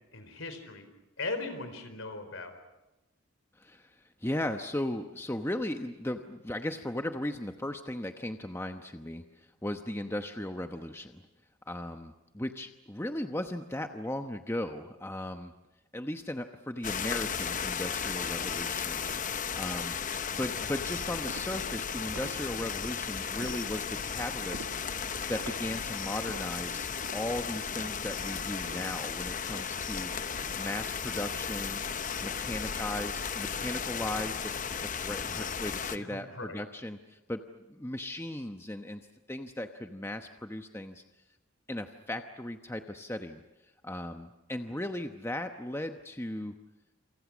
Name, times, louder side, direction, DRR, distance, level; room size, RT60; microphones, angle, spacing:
voice 1, 0.1-0.9 1.2-2.5 35.9-36.6, left 3 dB, 65° left, 9 dB, 4.4 m, -38 dB
voice 2, 3.5-11.2 11.7-15.5 15.9-19.9 20.4-24.7 25.3-31.8 32.2-34.5 34.9-37.4 37.7-39.0 39.3-41.0 41.7-43.4 43.8-46.5, left 1 dB, 10° left, 6 dB, 0.9 m, -37 dB
sound 1, 16.8-36.0, left 6 dB, 35° left, 0.9 m, -35 dB
sound 2, 21.3-22.9 23.4-24.1 24.5-30.1 30.4-32.4 32.8-33.2 33.7-34.1, right 2 dB, 70° right, 1.3 m, -50 dB
28.5 x 27.5 x 6.3 m, 0.97 s
head